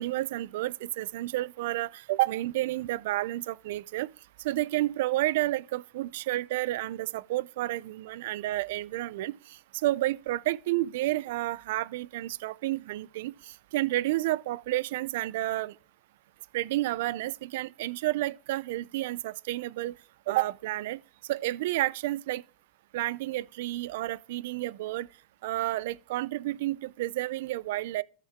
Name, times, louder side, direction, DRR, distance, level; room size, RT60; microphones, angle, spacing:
voice 1, 0.0-4.1 4.4-9.4 9.8-15.7 16.5-19.9 20.3-21.0 21.3-22.4 22.9-25.1 25.4-28.0, right 16 dB, 75° right, 0.5 m, -30 dB
13.5 x 6.7 x 3.6 m
supercardioid pair, 120°, 0 cm